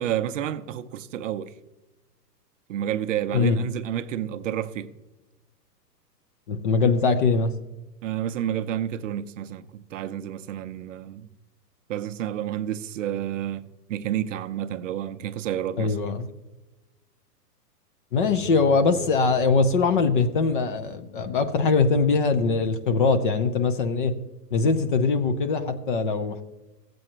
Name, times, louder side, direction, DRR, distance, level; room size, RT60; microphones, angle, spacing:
voice 1, 0.0-1.5 2.7-4.9 8.0-11.3 11.9-16.0, right 11 dB, 50° right, 0.6 m, -30 dB
voice 2, 6.5-7.5 15.8-16.3 18.1-24.1 24.5-26.4, left 4 dB, 35° left, 0.5 m, -22 dB
15.5 x 7.7 x 3.0 m
hypercardioid pair, 125°, 49 cm